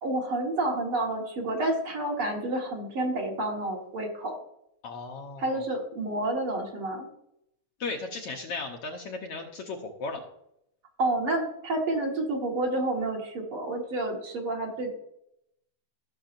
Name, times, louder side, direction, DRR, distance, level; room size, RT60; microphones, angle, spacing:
voice 1, 0.0-4.4 5.4-7.1 11.0-14.9, right 2 dB, 50° right, -1 dB, 2.3 m, -29 dB
voice 2, 4.8-5.6 7.8-10.2, left 3 dB, 65° left, 2 dB, 1.6 m, -36 dB
16.0 x 6.7 x 2.6 m, 0.78 s
omnidirectional pair, 3.4 m